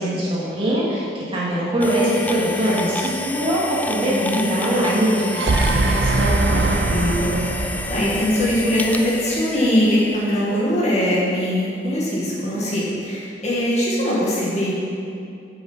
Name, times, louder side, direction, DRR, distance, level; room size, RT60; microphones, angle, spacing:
voice 1, 0.0-6.3, right 1 dB, 30° right, -7 dB, 2.0 m, -22 dB
sound 1, 1.8-10.7, left 2 dB, 10° left, 0.3 m, -30 dB
voice 2, 4.0-4.4 6.5-14.7, equal, 40° left, -6 dB, 2.0 m, -22 dB
sound 2, 5.1-9.3, right 2 dB, 70° right, 0.5 m, -22 dB
7.9 x 7.0 x 5.6 m, 2.5 s
head